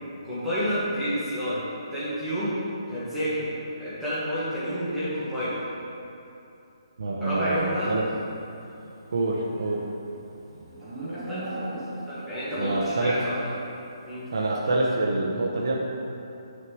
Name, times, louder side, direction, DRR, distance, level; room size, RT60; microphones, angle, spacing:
voice 1, 0.2-1.6 1.9-2.5 2.9-3.5 3.8-5.6 7.2-7.9 11.0-11.8 12.1-13.3 14.1-14.2, equal, ahead, -15 dB, 1.3 m, -29 dB
voice 2, 7.0-8.0 9.1-9.8 12.6-13.2 14.3-15.8, right 2 dB, 50° right, -3 dB, 0.9 m, -26 dB
Livestock farm animals working animals, 9.0-12.3, right 2 dB, 20° right, 1.2 m, -37 dB
7.4 x 6.4 x 4.7 m, 2.7 s
hypercardioid pair, 180°, 3 cm